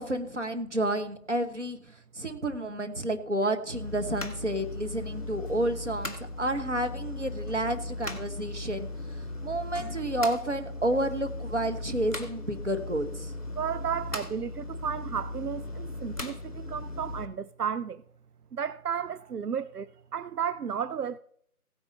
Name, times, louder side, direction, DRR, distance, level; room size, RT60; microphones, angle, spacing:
voice 1, 0.0-1.8 2.1-8.9 9.4-13.3, right 1 dB, 50° right, 1.3 m, -30 dB
sound 1, 3.7-17.3, left 2 dB, 55° left, 2.0 m, -37 dB
sound 2, 5.5-5.6 6.2-6.3 6.7-8.0 8.4-8.8 9.6-10.6 10.9-11.2, left 3 dB, 25° right, 4.2 m, -53 dB
voice 2, 13.6-18.0 18.5-21.2, right 7 dB, 80° right, 0.5 m, -33 dB
16.0 x 9.3 x 4.1 m
figure-of-eight pair, 170°, 45 cm